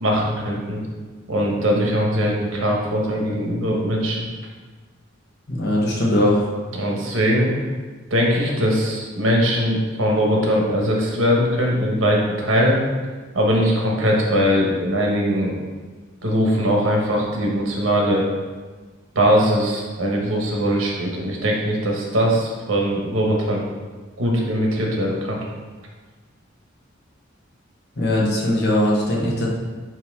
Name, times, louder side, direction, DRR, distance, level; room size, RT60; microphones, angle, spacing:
voice 1, 0.0-0.8 1.3-4.2 6.7-7.5 8.1-12.8 13.3-15.6 16.2-18.3 19.1-23.6 24.2-25.4, equal, 80° right, -2 dB, 1.3 m, -20 dB
voice 2, 5.5-6.4 28.0-29.5, left 1 dB, 55° left, -4 dB, 1.3 m, -20 dB
8.9 x 3.1 x 3.6 m, 1.4 s
head